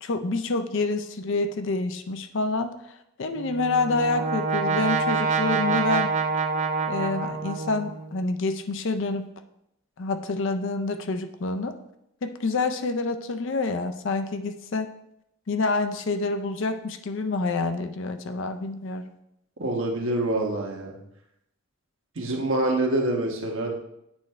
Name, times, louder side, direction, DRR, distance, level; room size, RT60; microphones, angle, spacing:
voice 1, 0.0-2.7 3.2-6.1 6.9-9.3 10.0-11.7 12.2-14.9 15.5-19.0, left 3 dB, 60° left, 9 dB, 0.5 m, -27 dB
Brass instrument, 3.4-8.2, right 4 dB, 35° right, 0.3 m, -26 dB
voice 2, 19.6-21.0 22.2-23.7, right 1 dB, 65° right, 1 dB, 1.2 m, -26 dB
8.7 x 3.3 x 4.6 m, 0.80 s
head